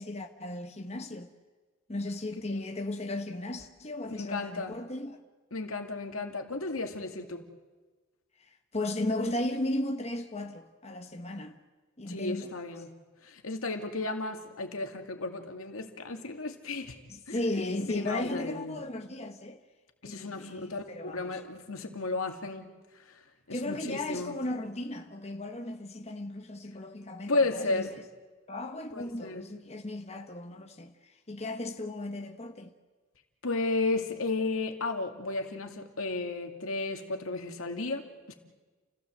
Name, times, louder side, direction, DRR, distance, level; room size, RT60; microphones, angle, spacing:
voice 1, 0.0-1.3 1.9-5.2 8.4-11.6 12.0-12.5 17.1-19.6 20.0-21.4 23.5-27.9 28.5-32.7, left 1 dB, 30° left, 1.3 m, -36 dB
voice 2, 4.1-4.8 5.5-7.4 12.1-12.9 13.2-17.0 17.3-17.4 17.9-18.8 20.0-22.7 23.5-24.4 27.3-27.9 28.9-29.4 33.4-38.3, left 3 dB, 85° left, 2.4 m, -33 dB
29.0 x 16.5 x 7.8 m
head